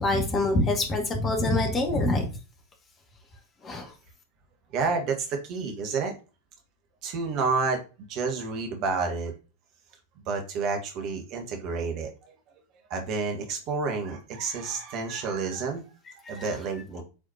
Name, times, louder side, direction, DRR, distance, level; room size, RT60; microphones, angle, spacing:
voice 1, 0.0-2.3 3.6-3.9 16.2-16.5, left 2 dB, 25° left, 3 dB, 2.1 m, -25 dB
voice 2, 4.7-6.1 7.0-7.8 8.1-9.3 10.3-12.3 12.9-15.8 16.3-17.0, right 4 dB, 40° right, 4 dB, 1.8 m, -29 dB
8.6 x 4.9 x 2.9 m, 0.32 s
figure-of-eight pair, 90°, 0 cm